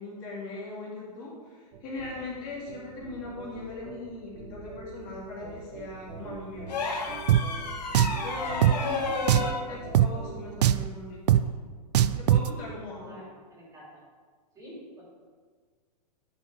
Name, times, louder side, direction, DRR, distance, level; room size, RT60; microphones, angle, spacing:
voice 1, 0.0-7.2 8.2-11.4 12.2-13.2, left 2 dB, 35° left, -5 dB, 2.9 m, -40 dB
sound 1, 1.7-10.7, right 4 dB, 40° right, 1.8 m, -44 dB
sound 2, 6.7-9.6 11.3-11.5, left 4 dB, 80° left, 1.9 m, -32 dB
Drum, 7.3-7.4 7.9-8.2 8.6-8.8 9.3-9.5 9.9-10.1 10.6-10.9 11.3-11.4 11.9-12.5, right 12 dB, 75° right, 0.4 m, -20 dB
voice 2, 13.0-14.0 14.5-15.0, equal, 15° right, -5 dB, 2.8 m, -48 dB
11.0 x 5.0 x 4.9 m, 1.5 s
hypercardioid pair, 145°, 21 cm